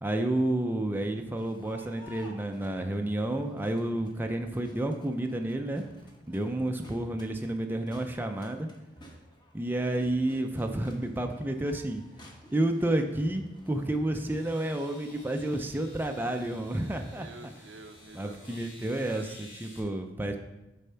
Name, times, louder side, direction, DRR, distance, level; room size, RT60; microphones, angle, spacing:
voice 1, 0.0-5.8 6.3-8.7 9.5-12.0 12.5-17.3 18.1-19.3 19.6-20.4, right 1 dB, 10° right, 4 dB, 0.4 m, -30 dB
Crowd, 0.9-18.7, equal, 25° left, 1.0 m, -55 dB
voice 2, 6.7-7.2 17.0-18.6 19.0-19.6, right 3 dB, 75° right, 8 dB, 0.6 m, -50 dB
sound 1, 14.3-19.8, left 1 dB, 85° left, 2.6 m, -53 dB
6.7 x 4.2 x 5.6 m, 1.0 s
head